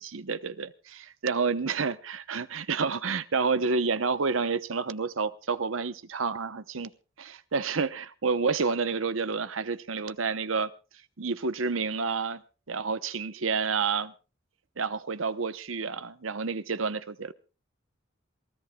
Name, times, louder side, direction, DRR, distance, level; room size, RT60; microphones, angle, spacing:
voice 1, 0.0-6.9 7.2-10.7 11.2-12.4 12.7-14.1 14.8-17.3, right 4 dB, 85° right, 0.9 m, -29 dB
27.5 x 16.0 x 2.3 m
head